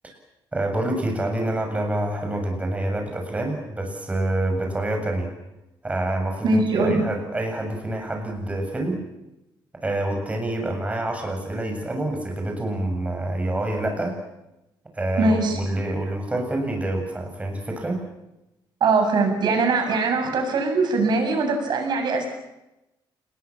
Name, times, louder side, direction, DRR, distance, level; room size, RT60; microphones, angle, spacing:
voice 1, 0.5-5.3 5.8-9.0 9.8-14.2 14.9-18.0, right 1 dB, 15° right, 3 dB, 7.5 m, -27 dB
voice 2, 6.4-7.1 15.2-15.6 18.8-22.2, right 3 dB, 55° right, 5 dB, 8.0 m, -21 dB
29.5 x 21.5 x 7.4 m, 0.92 s
cardioid pair, 145°, 9 cm